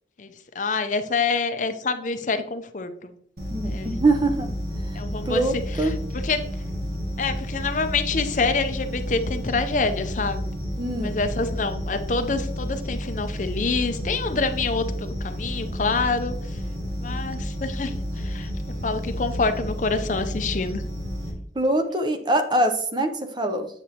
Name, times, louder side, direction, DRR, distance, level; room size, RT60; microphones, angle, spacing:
voice 1, 0.2-3.2 3.7-4.0 4.9-5.4 5.7-6.5 7.2-10.5 11.0-16.6 17.0-18.5 18.8-20.8, left 4 dB, 45° left, 9 dB, 0.5 m, -27 dB
sound 1, 3.4-21.3, equal, 60° right, 1.7 m, -31 dB
voice 2, 3.5-4.5 5.3-5.9 10.8-11.1 21.6-23.7, right 2 dB, 25° right, 7 dB, 0.6 m, -23 dB
8.1 x 6.0 x 2.9 m, 0.66 s
head